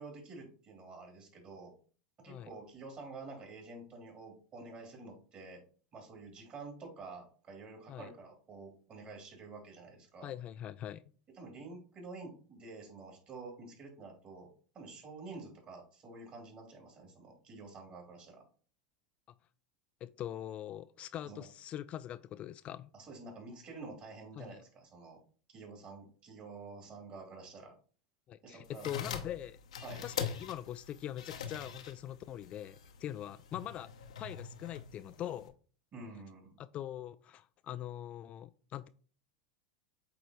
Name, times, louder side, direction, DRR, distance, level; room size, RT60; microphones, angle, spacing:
voice 1, 0.0-1.7 2.2-5.6 5.9-10.3 11.3-14.5 14.7-18.4 21.2-21.5 22.9-25.2 25.5-27.7 28.4-29.3 29.8-30.1 35.9-36.6, right 3 dB, 35° right, 3.3 m, -49 dB
voice 2, 10.2-11.0 20.0-22.9 24.4-24.6 28.3-29.6 30.0-33.9 34.2-35.5 36.6-38.9, left 11 dB, 35° left, 0.3 m, -42 dB
sound 1, 28.6-35.5, left 7 dB, 85° left, 0.9 m, -43 dB
8.3 x 3.9 x 3.1 m
hypercardioid pair, 100°, 3 cm